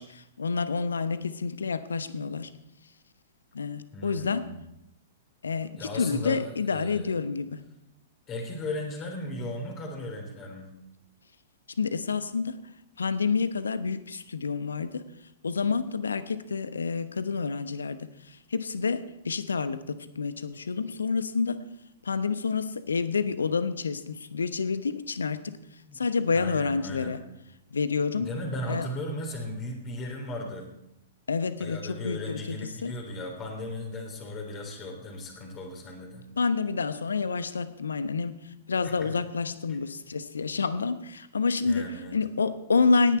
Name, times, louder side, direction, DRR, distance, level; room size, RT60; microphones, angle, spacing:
voice 1, 0.0-2.5 3.5-4.4 5.4-7.6 11.8-12.6 13.0-15.0 15.4-21.6 22.0-25.5 25.9-27.2 27.7-28.3 28.7-28.9 31.3-32.9 36.4-38.4 38.7-43.2, left 4 dB, 70° left, 13 dB, 0.9 m, -28 dB
voice 2, 3.9-4.6 5.8-7.2 8.3-10.7 25.9-26.1 26.3-27.2 28.2-30.7 31.6-36.3 38.8-39.2 39.7-39.8 41.7-42.2, left 1 dB, 25° left, 1 dB, 3.4 m, -36 dB
18.0 x 10.5 x 4.4 m, 0.86 s
figure-of-eight pair, 105°, 0 cm